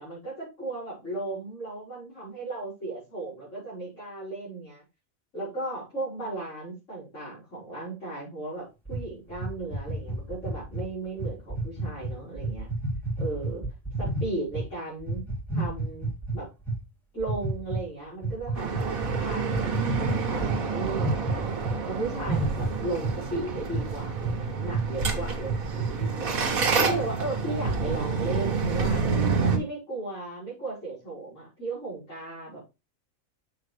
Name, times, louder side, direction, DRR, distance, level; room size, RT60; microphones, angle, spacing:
voice 1, 0.0-4.8 5.3-12.7 13.2-13.6 14.0-15.2 15.5-16.1 16.3-16.5 17.1-21.6 21.9-26.4 26.8-29.0 29.4-32.6, right 2 dB, 60° left, -11 dB, 5.5 m, -35 dB
sound 1, 8.9-14.7 15.0-16.8 17.2-17.8 18.2-21.8 22.0-23.2 23.7-23.8 24.2-24.4 24.7-24.9 25.3-26.1, right 2 dB, ahead, 2.5 m, -30 dB
sound 2, 18.6-29.6, right 5 dB, 80° right, 1.9 m, -28 dB
7.6 x 5.9 x 3.4 m, 0.26 s
omnidirectional pair, 1.4 m